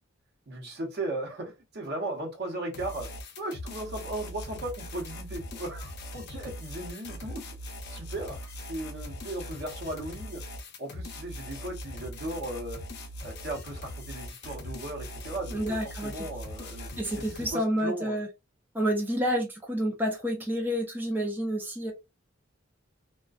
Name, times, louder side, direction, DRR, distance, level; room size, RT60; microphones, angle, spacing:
voice 1, 0.5-3.1 3.4-7.4 7.9-10.4 10.8-12.8 13.2-18.2, right 1 dB, 55° right, 0.8 m, -37 dB
sound 1, 2.7-17.5, left 1 dB, 55° left, 0.6 m, -41 dB
voice 2, 15.5-16.3 17.0-18.3 18.7-21.9, equal, 10° right, 0.4 m, -29 dB
2.4 x 2.1 x 2.3 m
head